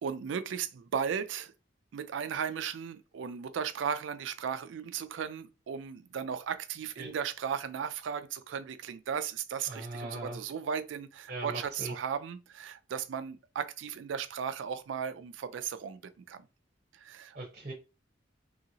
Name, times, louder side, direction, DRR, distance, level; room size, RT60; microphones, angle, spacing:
voice 1, 0.0-1.5 1.9-16.5 16.9-17.4, right 7 dB, 80° right, 0.3 m, -36 dB
voice 2, 9.7-10.4 11.3-11.9 17.3-17.7, right 2 dB, 40° right, 0.7 m, -39 dB
2.8 x 2.7 x 2.7 m
head